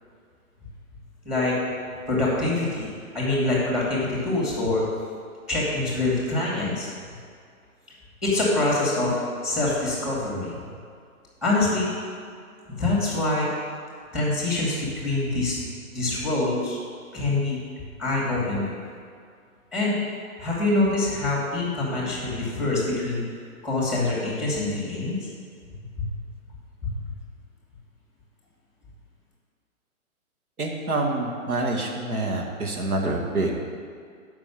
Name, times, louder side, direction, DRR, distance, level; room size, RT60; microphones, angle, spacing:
voice 1, 2.1-2.9 3.1-4.8 5.5-6.9 8.2-9.1 9.4-10.6 11.4-11.9 12.7-13.5 14.1-15.6 15.9-16.8 17.1-17.6 18.0-18.8 19.7-19.9 20.4-23.2 23.6-25.2 26.0-26.1 26.8-27.0, left 2 dB, ahead, -5 dB, 2.5 m, -25 dB
voice 2, 30.6-33.6, right 2 dB, 90° right, 0 dB, 1.9 m, -26 dB
7.6 x 6.1 x 7.3 m, 2.2 s
hypercardioid pair, 150°, 43 cm